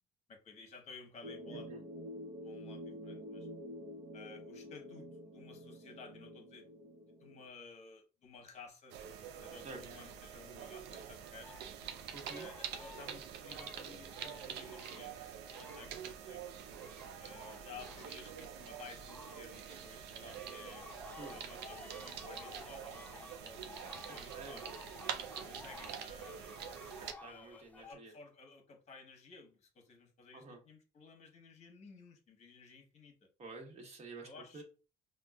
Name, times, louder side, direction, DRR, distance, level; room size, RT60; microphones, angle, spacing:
voice 1, 0.3-1.8 2.4-3.5 4.1-9.0 9.4-11.5 12.3-15.1 15.6-16.4 17.2-20.8 21.3-24.8 25.4-26.5 27.3-33.3 34.2-34.6, left 4 dB, 40° left, 1.0 m, -55 dB
sound 1, 1.2-7.4, equal, 60° right, 0.9 m, -48 dB
sound 2, 8.9-27.1, right 8 dB, 80° right, 0.5 m, -46 dB
sound 3, 11.4-16.2 16.5-27.9, left 3 dB, 10° left, 0.4 m, -54 dB
voice 2, 12.1-12.5 21.2-21.4 24.0-24.6 27.0-28.1 30.3-30.6 33.4-34.3 34.5-34.6, right 3 dB, 40° right, 1.2 m, -49 dB
5.1 x 2.2 x 2.3 m
cardioid pair, 110°, 17 cm